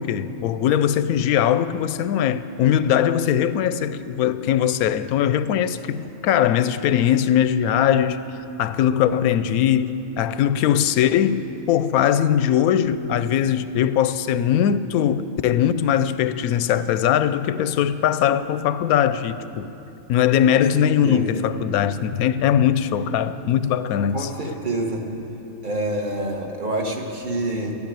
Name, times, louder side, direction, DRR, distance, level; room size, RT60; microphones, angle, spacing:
voice 1, 0.0-8.2 8.6-19.7 20.1-24.3, left 9 dB, 90° left, 1.1 m, -20 dB
voice 2, 20.5-21.4 24.1-25.0 25.6-27.7, right 1 dB, 35° right, 1.4 m, -27 dB
12.5 x 9.7 x 8.9 m
omnidirectional pair, 1.5 m